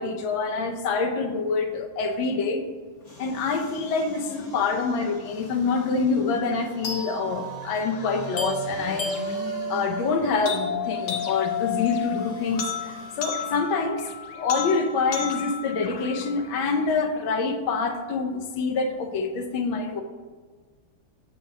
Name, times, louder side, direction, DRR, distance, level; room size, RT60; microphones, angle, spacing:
voice 1, 0.0-2.6 3.2-9.1 9.7-12.7 13.2-14.0 14.3-20.0, left 4 dB, 90° left, 3 dB, 1.5 m, -26 dB
sound 1, 3.0-13.5 14.0-14.1, left 1 dB, 35° left, 2.4 m, -43 dB
sound 2, 6.8-16.9, left 4 dB, 55° left, 0.8 m, -32 dB
8.3 x 7.2 x 2.7 m, 1.5 s
omnidirectional pair, 2.1 m